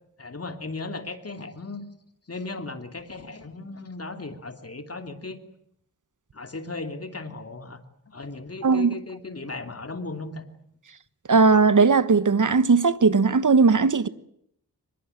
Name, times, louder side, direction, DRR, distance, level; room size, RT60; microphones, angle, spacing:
voice 1, 0.2-1.8 2.3-5.4 6.3-7.8 8.1-10.4, left 3 dB, 40° left, 3.0 m, -36 dB
voice 2, 8.6-8.9 11.3-14.1, right 4 dB, 60° right, 1.4 m, -18 dB
24.5 x 21.0 x 9.2 m
wide cardioid pair, 75°, 35 cm